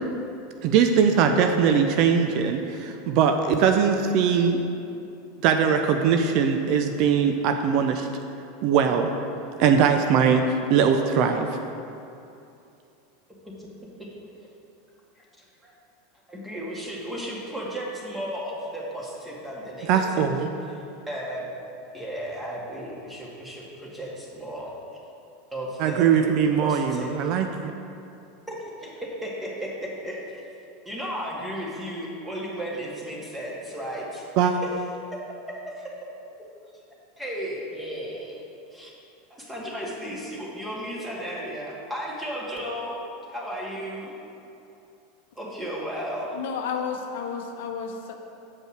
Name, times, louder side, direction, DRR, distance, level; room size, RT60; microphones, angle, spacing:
voice 1, 0.6-4.6 5.4-8.1 8.6-9.1 9.6-10.4 10.7-11.5 19.9-20.5 25.8-27.5 34.4-34.5, right 7 dB, 50° right, 5 dB, 0.5 m, -21 dB
voice 2, 15.2-15.7 16.3-20.3 20.6-21.5 21.9-24.7 25.5-26.0 26.6-27.3 28.6-30.4 30.9-34.6 35.1-35.2 35.5-35.9 37.2-38.4 38.7-38.9 39.3-43.0 43.3-44.1 45.4-46.4, equal, 10° right, -5 dB, 2.2 m, -34 dB
voice 3, 46.3-48.1, left 6 dB, 65° left, 3 dB, 0.8 m, -31 dB
7.4 x 5.3 x 6.4 m, 2.7 s
figure-of-eight pair, 85°, 0 cm